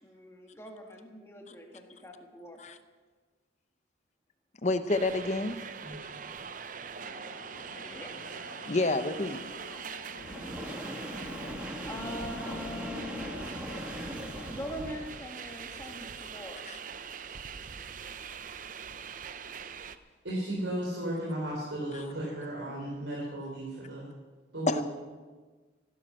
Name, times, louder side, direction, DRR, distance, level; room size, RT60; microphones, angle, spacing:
voice 1, 0.0-2.6 5.8-6.0 7.8-8.1 9.7-9.9 11.5-13.7 14.5-16.6, left 1 dB, 15° left, 1 dB, 2.1 m, -43 dB
voice 2, 4.6-5.6 8.7-9.4 24.7-24.8, left 2 dB, 35° left, 10 dB, 0.8 m, -28 dB
sound 1, 4.9-20.0, right 6 dB, 45° right, 0.6 m, -42 dB
sound 2, 7.0-15.3, left 3 dB, 80° left, 1.0 m, -49 dB
Train, 10.2-15.2, equal, 5° right, 1.4 m, -40 dB
voice 3, 20.2-24.1 24.5-24.8, right 1 dB, 85° right, -5 dB, 4.0 m, -34 dB
16.0 x 12.0 x 6.3 m, 1.4 s
head